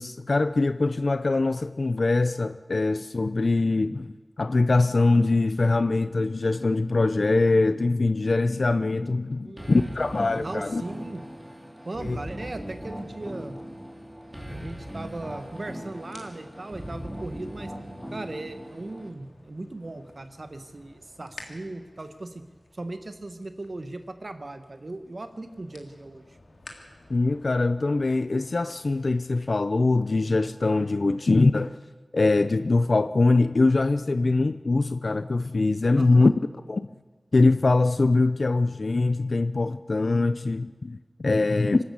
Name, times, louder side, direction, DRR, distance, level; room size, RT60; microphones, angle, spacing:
voice 1, 0.0-10.8 12.0-12.2 27.1-31.8 32.1-36.3 36.7-36.9 37.3-41.8, left 3 dB, 60° left, 11 dB, 0.6 m, -23 dB
voice 2, 9.4-9.9 10.4-11.2 11.8-13.5 14.5-17.7 18.1-22.4 22.7-26.2 31.0-31.1 35.9-36.3 41.4-41.8, right 2 dB, 50° right, 8 dB, 1.5 m, -38 dB
sound 1, 9.6-19.1, equal, 10° right, 4.0 m, -39 dB
sound 2, 12.0-29.6, left 2 dB, 80° left, 2.9 m, -54 dB
26.0 x 13.5 x 8.3 m, 1.4 s
wide cardioid pair, 75°, 0 cm